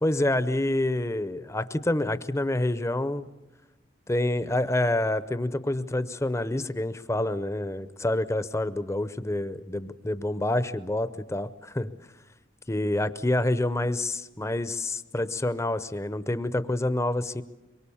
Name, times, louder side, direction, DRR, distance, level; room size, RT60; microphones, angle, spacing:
voice 1, 0.0-3.2 4.1-11.9 12.7-17.4, left 1 dB, 15° left, 14 dB, 0.7 m, -27 dB
24.0 x 23.5 x 7.1 m, 1.1 s
head